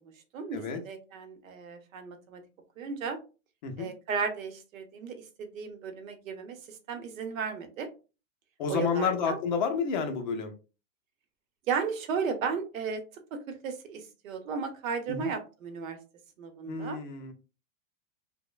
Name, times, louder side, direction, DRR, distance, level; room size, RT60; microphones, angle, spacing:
voice 1, 0.3-2.4 2.8-3.2 3.8-7.9 8.7-9.4 11.7-13.0 13.6-16.0 16.4-17.0, right 5 dB, 90° right, 7 dB, 0.8 m, -35 dB
voice 2, 8.6-10.5 15.1-15.3 16.7-17.3, left 5 dB, 40° left, 5 dB, 0.4 m, -30 dB
2.9 x 2.0 x 2.2 m, 0.32 s
supercardioid pair, 160°, 39 cm